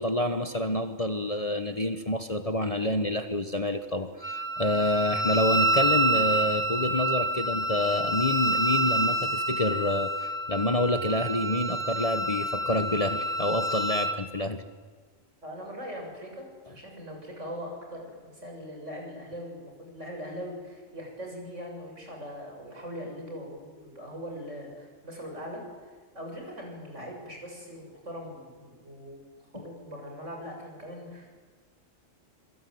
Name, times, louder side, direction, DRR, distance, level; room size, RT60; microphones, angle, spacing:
voice 1, 0.0-14.6, left 1 dB, 30° left, 7 dB, 1.3 m, -28 dB
Wind instrument woodwind instrument, 4.2-14.2, right 1 dB, ahead, 1.7 m, -28 dB
voice 2, 15.4-29.2 29.5-31.4, equal, 60° right, 1 dB, 7.7 m, -41 dB
25.5 x 23.5 x 9.5 m, 1.4 s
omnidirectional pair, 1.4 m